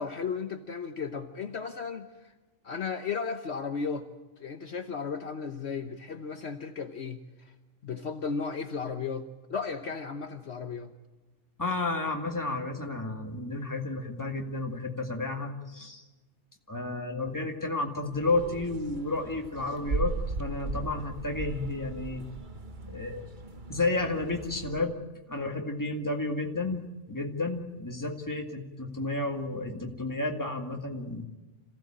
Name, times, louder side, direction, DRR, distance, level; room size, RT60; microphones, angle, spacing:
voice 1, 0.0-2.3 2.6-4.1 4.4-7.5 7.8-10.9, left 5 dB, 60° left, 7 dB, 1.3 m, -35 dB
voice 2, 11.6-16.0 16.7-20.1 20.4-22.3 22.9-23.2 23.7-25.0 25.3-31.3, left 2 dB, 15° left, 3 dB, 2.1 m, -32 dB
sound 1, 18.1-24.8, right 4 dB, 40° right, 1.4 m, -37 dB
26.5 x 16.0 x 8.8 m, 1.2 s
omnidirectional pair, 1.3 m